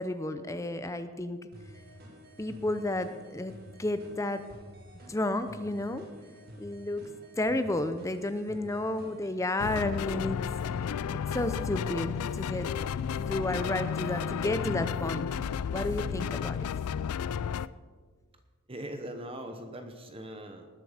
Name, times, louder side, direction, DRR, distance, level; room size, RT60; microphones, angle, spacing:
voice 1, 0.0-1.5 2.4-3.5 3.8-4.4 5.1-6.1 6.6-10.4 11.3-12.8 13.3-15.3 15.7-16.7, left 1 dB, 15° left, 10 dB, 0.6 m, -32 dB
sound 1, 1.5-9.3, equal, 45° right, 1.8 m, -50 dB
sound 2, 9.6-17.7, left 7 dB, 85° left, 0.4 m, -32 dB
voice 2, 18.7-20.7, right 1 dB, 25° right, 6 dB, 0.9 m, -41 dB
19.5 x 7.7 x 5.0 m, 1.5 s
head